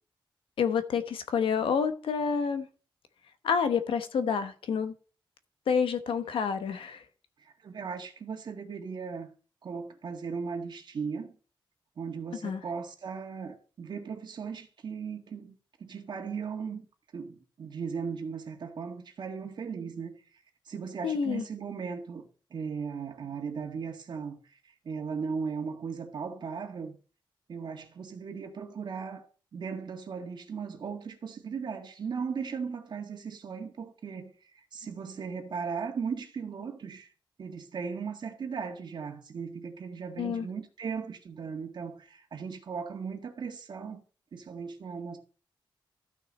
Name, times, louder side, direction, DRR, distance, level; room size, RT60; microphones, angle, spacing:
voice 1, 0.6-2.7 3.4-4.9 5.7-7.0 12.4-12.6 21.0-21.4 40.2-40.5, left 6 dB, 85° left, 1.1 m, -28 dB
voice 2, 7.6-9.3 9.6-11.3 12.0-16.9 17.1-20.2 20.6-22.2 22.5-24.6 24.8-27.0 27.5-29.2 29.5-34.3 34.7-37.1 37.4-44.0 44.3-45.2, right 6 dB, 60° right, 1.8 m, -37 dB
13.5 x 6.2 x 4.2 m
wide cardioid pair, 135°, 9 cm